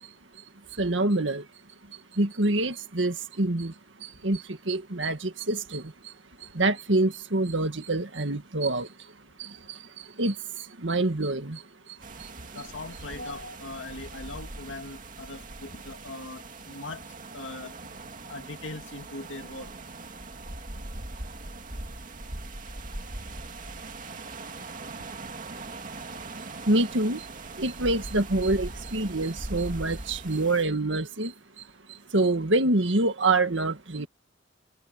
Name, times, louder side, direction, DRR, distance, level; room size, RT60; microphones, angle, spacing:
voice 1, 0.0-0.4 0.7-1.5 1.9-6.1 6.4-9.1 9.4-12.3 26.7-27.3 27.6-34.1, right 2 dB, 75° right, 1.9 m, -27 dB
sound 1, 12.0-30.6, right 2 dB, 45° right, 2.3 m, -40 dB
voice 2, 12.5-17.0 17.3-17.8 18.2-19.8, left 2 dB, 80° left, 2.3 m, -40 dB
head